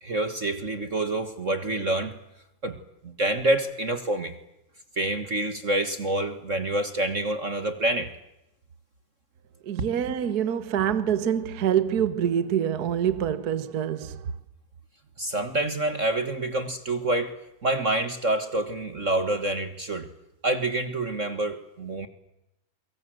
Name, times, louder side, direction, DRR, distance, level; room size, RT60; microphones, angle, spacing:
voice 1, 0.0-2.1 2.6-2.8 3.0-4.3 5.0-8.1 15.2-17.3 17.6-20.1 20.4-22.1, right 2 dB, 35° right, 1.2 m, -27 dB
voice 2, 9.6-14.3, right 9 dB, 70° right, 0.9 m, -26 dB
29.0 x 23.5 x 7.7 m
omnidirectional pair, 3.5 m